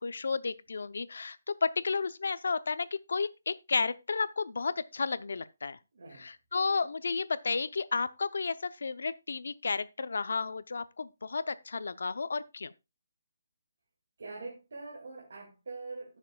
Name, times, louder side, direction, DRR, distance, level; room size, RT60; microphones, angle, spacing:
voice 1, 0.0-1.4 1.6-5.8 6.2-12.7, left 4 dB, 70° left, 0.7 m, -32 dB
voice 2, 5.9-6.3 14.2-16.2, right 3 dB, 60° right, 2.2 m, -43 dB
17.5 x 6.6 x 2.3 m
hypercardioid pair, 175°, 0 cm